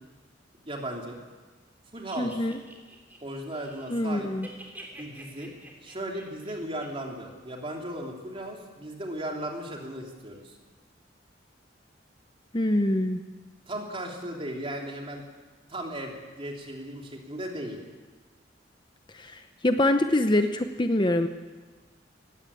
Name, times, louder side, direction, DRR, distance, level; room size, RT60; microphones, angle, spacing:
voice 1, 0.6-1.2 1.9-2.5 3.2-4.3 4.9-5.5 5.8-10.6 13.7-15.2 15.7-17.8, right 1 dB, 30° right, 1 dB, 3.2 m, -36 dB
sound 1, 2.0-4.1 4.3-6.9, right 1 dB, 10° right, 3.2 m, -48 dB
voice 2, 2.2-2.6 3.9-4.5 12.5-13.2 19.1-21.3, left 1 dB, 25° left, 7 dB, 0.8 m, -25 dB
19.0 x 16.0 x 8.5 m, 1.3 s
head